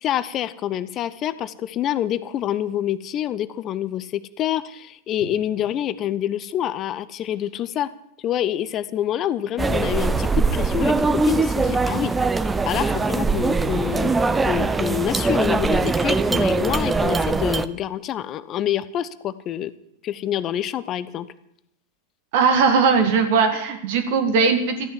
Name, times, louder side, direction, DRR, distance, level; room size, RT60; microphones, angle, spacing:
voice 1, 0.0-7.9 8.2-12.1 12.7-14.1 14.4-19.7 20.0-21.3, left 11 dB, 30° left, 16 dB, 0.7 m, -26 dB
sound 1, 9.6-17.7, right 3 dB, 10° right, 0.7 m, -21 dB
voice 2, 22.3-24.9, right 5 dB, 50° right, 6 dB, 2.0 m, -19 dB
13.5 x 9.5 x 7.6 m, 0.77 s
figure-of-eight pair, 90°, 0 cm